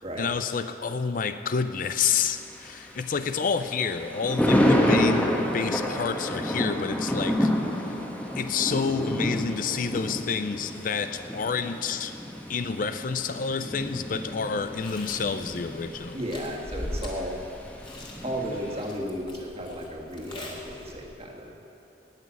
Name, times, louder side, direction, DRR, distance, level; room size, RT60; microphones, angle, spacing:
voice 1, 0.2-7.5 8.4-12.2 12.5-16.2, left 5 dB, 50° left, 10 dB, 0.5 m, -29 dB
Thunder, 1.8-18.9, equal, 10° left, 1.2 m, -29 dB
Chewing mastication, 14.6-21.2, left 1 dB, 30° left, 2.1 m, -41 dB
voice 2, 16.1-17.4 18.2-21.5, equal, 35° right, 0 dB, 1.7 m, -34 dB
18.0 x 6.2 x 8.3 m, 3.0 s
head